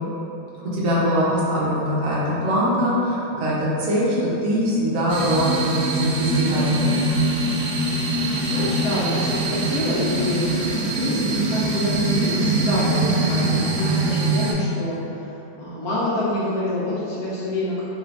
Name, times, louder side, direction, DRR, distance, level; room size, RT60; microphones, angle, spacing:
voice 1, 0.7-6.9, equal, 65° right, -7 dB, 0.8 m, -22 dB
sound 1, 5.1-14.5, right 2 dB, 80° right, 1.3 m, -23 dB
voice 2, 7.8-10.5 11.0-17.9, left 1 dB, 70° left, -8 dB, 0.9 m, -27 dB
3.2 x 2.4 x 3.2 m, 2.8 s
omnidirectional pair, 2.1 m